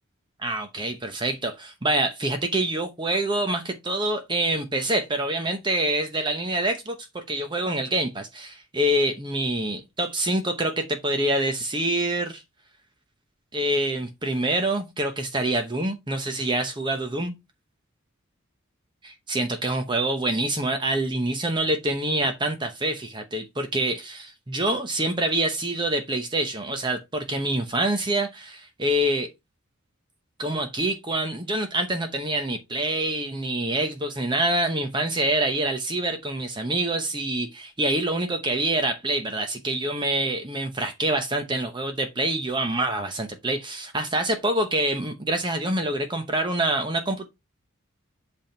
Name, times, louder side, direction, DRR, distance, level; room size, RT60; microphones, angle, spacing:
voice 1, 0.4-12.4 13.5-17.3 19.3-29.3 30.4-47.3, right 1 dB, 25° right, 0.8 m, -26 dB
8.1 x 3.5 x 4.4 m
head